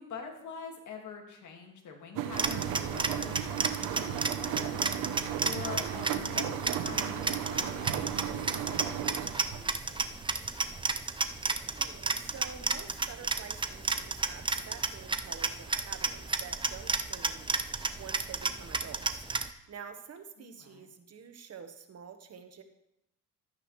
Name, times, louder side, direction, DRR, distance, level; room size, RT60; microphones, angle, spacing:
voice 1, 0.0-10.2 20.4-20.9, left 6 dB, 65° left, 2 dB, 2.2 m, -45 dB
sound 1, 2.1-9.8 10.1-10.6 11.1-11.2, right 9 dB, 85° right, 0.9 m, -35 dB
sound 2, 2.3-19.5, right 3 dB, 15° right, 0.6 m, -33 dB
voice 2, 11.7-19.0 19.7-22.6, right 6 dB, 50° right, 7 dB, 1.3 m, -48 dB
12.5 x 8.8 x 3.2 m, 0.84 s
cardioid pair, 75°, 31 cm